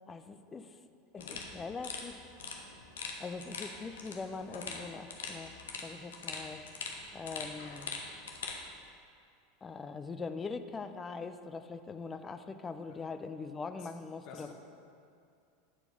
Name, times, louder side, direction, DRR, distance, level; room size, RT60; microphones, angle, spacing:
voice 1, 0.1-0.7 1.1-2.3 3.2-5.5 5.8-6.6 7.1-7.9 9.6-14.5, left 4 dB, 20° left, 9 dB, 0.4 m, -42 dB
sound 1, 1.2-8.6, left 4 dB, 65° left, 0.9 m, -43 dB
voice 2, 12.9-13.0 13.7-13.9 14.2-14.5, left 5 dB, 45° left, 1 dB, 1.2 m, -50 dB
9.8 x 4.5 x 5.5 m, 2.5 s
figure-of-eight pair, 80°, 0 cm